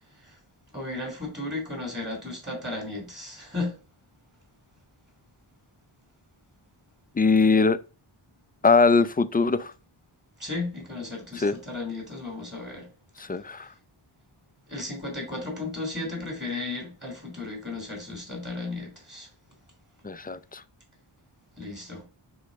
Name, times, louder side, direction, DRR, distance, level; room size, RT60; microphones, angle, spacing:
voice 1, 0.7-3.7 10.4-12.9 14.7-19.3 21.6-22.0, left 2 dB, 20° right, 3.0 m, -34 dB
voice 2, 7.2-7.8 8.6-9.7 11.4-11.6 13.3-13.7 20.0-20.6, left 4 dB, 20° left, 0.3 m, -21 dB
6.5 x 3.2 x 5.1 m
wide cardioid pair, 65°, 50 cm